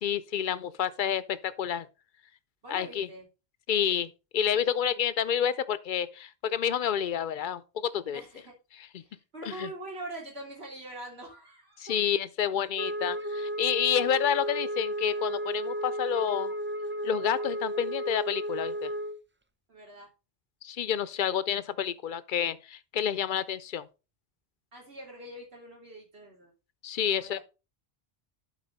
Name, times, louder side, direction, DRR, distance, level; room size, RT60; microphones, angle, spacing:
voice 1, 0.0-1.9 2.7-3.1 3.7-8.2 8.9-9.0 9.5-9.7 11.8-16.5 17.0-18.9 20.6-23.9 26.8-27.4, left 9 dB, 60° left, 0.7 m, -29 dB
voice 2, 2.6-3.3 8.1-8.6 9.0-12.0 19.7-20.1 24.7-26.5 27.1-27.4, right 1 dB, 90° right, 3.4 m, -43 dB
Wind instrument woodwind instrument, 12.8-19.2, equal, 20° right, 0.3 m, -33 dB
11.5 x 4.6 x 4.1 m
omnidirectional pair, 1.0 m